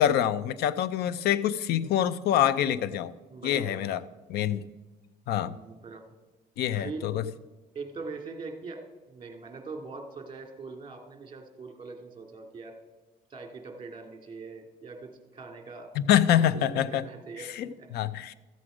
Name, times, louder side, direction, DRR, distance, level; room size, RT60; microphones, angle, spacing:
voice 1, 0.0-3.1 3.4-4.0 4.3-4.7 5.3-5.6 6.6-7.2 15.9-17.1 17.4-18.3, left 10 dB, 75° left, 16 dB, 0.6 m, -25 dB
voice 2, 3.3-3.8 5.4-6.0 6.7-7.1 7.7-8.8 9.1-12.8 13.3-15.9 16.4-17.5 17.8-17.9, right 4 dB, 30° right, 4 dB, 2.2 m, -42 dB
14.0 x 7.7 x 4.9 m, 1.2 s
cardioid pair, 110°, 17 cm